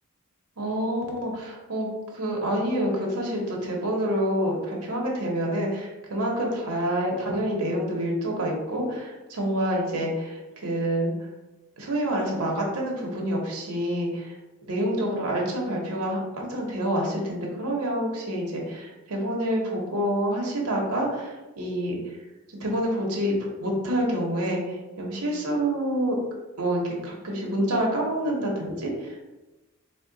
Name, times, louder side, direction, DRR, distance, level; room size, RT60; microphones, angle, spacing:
voice 1, 0.6-1.9 2.1-11.3 11.8-14.4 14.7-22.2 22.5-26.2 26.6-29.2, right 1 dB, 90° right, -1 dB, 0.8 m, -27 dB
3.5 x 2.0 x 3.8 m, 1.1 s
head